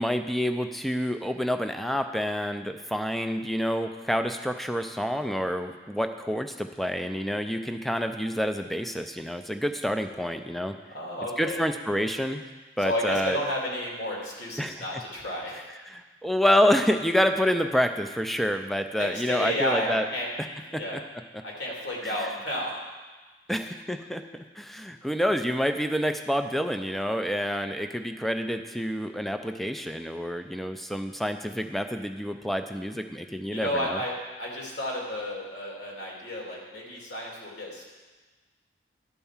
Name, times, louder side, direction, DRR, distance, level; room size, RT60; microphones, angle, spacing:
voice 1, 0.0-10.8 11.4-12.4 12.8-13.4 14.6-14.8 15.9-20.0 22.0-22.1 23.5-34.0, equal, ahead, 7 dB, 0.4 m, -28 dB
voice 2, 10.9-11.6 12.8-15.7 19.0-20.3 20.7-21.0 21.4-22.8 23.5-23.7 33.5-34.1 34.4-37.8, left 1 dB, 80° left, -3 dB, 2.5 m, -32 dB
11.0 x 4.6 x 7.2 m, 1.3 s
head